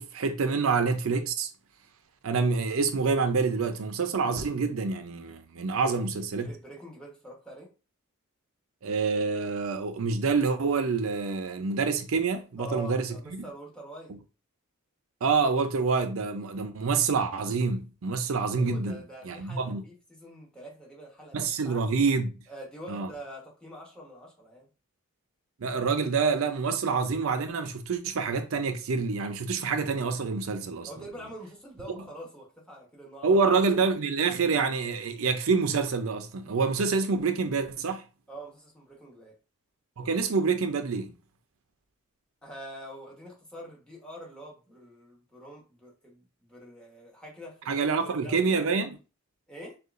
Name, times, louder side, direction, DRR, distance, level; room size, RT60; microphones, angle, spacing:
voice 1, 0.0-1.5 2.2-6.5 8.8-13.4 15.2-19.0 19.2-19.8 21.3-22.3 22.9-23.1 25.6-30.9 33.2-38.0 40.0-41.1 47.7-49.0, right 4 dB, 75° right, 0.5 m, -27 dB
voice 2, 5.8-7.7 12.6-14.2 18.5-21.8 22.5-24.7 30.9-33.4 38.3-39.4 42.4-48.7 49.5-49.8, right 1 dB, 5° left, 1.0 m, -45 dB
6.5 x 2.4 x 2.5 m
head